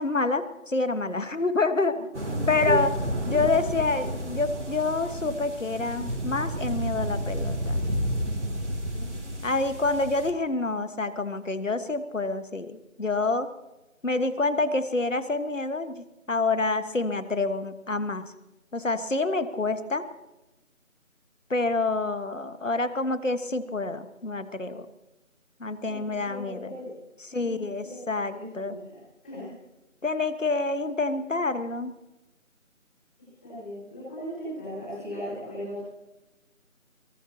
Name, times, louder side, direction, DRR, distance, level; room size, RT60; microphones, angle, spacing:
voice 1, 0.0-2.0 2.5-2.9 3.3-7.8 9.4-13.5 14.0-18.3 18.7-20.0 21.5-24.9 25.6-26.7 27.2-28.7 30.0-32.0, left 3 dB, 65° left, 11 dB, 1.5 m, -27 dB
sound 1, 2.1-10.3, equal, 55° right, 2.8 m, -31 dB
voice 2, 2.2-2.7 8.8-9.5 25.9-26.9 27.4-28.0 28.3-29.0 29.2-29.5 33.4-35.8, left 1 dB, 5° left, -11 dB, 5.0 m, -37 dB
22.5 x 19.0 x 2.9 m, 0.99 s
figure-of-eight pair, 175°, 41 cm